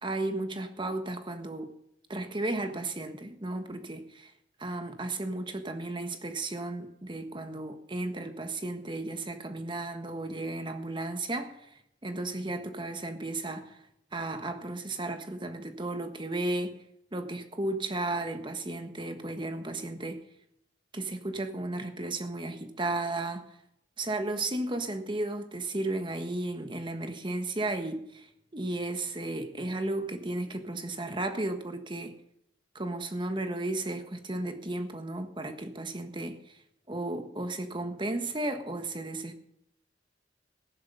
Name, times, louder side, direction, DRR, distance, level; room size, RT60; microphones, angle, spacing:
voice 1, 0.0-1.7 2.1-4.3 4.6-11.7 12.0-13.8 14.1-16.8 17.1-20.2 20.9-23.4 24.0-28.3 28.5-32.1 32.7-36.6 36.9-39.4, right 2 dB, 25° right, 7 dB, 1.4 m, -34 dB
15.0 x 11.0 x 5.6 m, 0.78 s
head